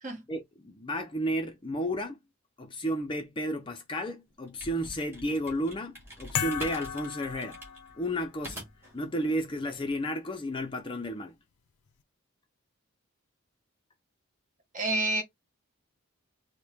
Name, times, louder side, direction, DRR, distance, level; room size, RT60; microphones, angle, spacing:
voice 1, 0.3-2.2 2.6-7.6 8.0-8.7 8.9-11.4, equal, 20° left, 0.5 m, -32 dB
sound 1, 4.3-9.0, equal, 10° right, 1.8 m, -45 dB
sound 2, 6.3-8.3, left 8 dB, 90° left, 0.5 m, -35 dB
voice 2, 14.7-15.2, right 1 dB, 35° right, 1.0 m, -28 dB
4.6 x 2.2 x 3.5 m
head